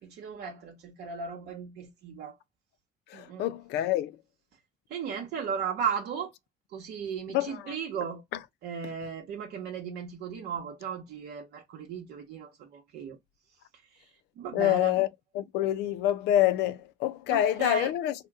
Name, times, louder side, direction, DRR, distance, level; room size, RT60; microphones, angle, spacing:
voice 1, 0.0-2.4 3.1-3.5 4.9-6.3 6.7-8.2 8.6-13.2 14.4-14.9 17.3-17.9, right 7 dB, 75° right, 0.8 m, -36 dB
voice 2, 3.1-4.2 7.3-7.7 14.5-15.1 15.3-18.1, left 13 dB, 85° left, 0.4 m, -26 dB
2.8 x 2.2 x 3.3 m
cardioid pair, 110°, 17 cm